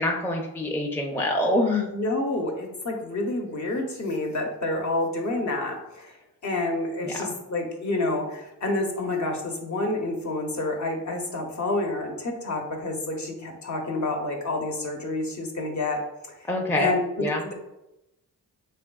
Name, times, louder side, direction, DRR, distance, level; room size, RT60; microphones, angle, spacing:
voice 1, 0.0-1.9 7.0-7.3 16.5-16.9 17.2-17.4, left 1 dB, 5° left, 0 dB, 0.5 m, -25 dB
voice 2, 1.9-6.2 6.4-16.0 16.4-16.5 16.8-17.0 17.4-17.5, left 2 dB, 45° left, 1 dB, 0.8 m, -28 dB
3.3 x 3.3 x 2.2 m, 0.91 s
cardioid pair, 55°, 41 cm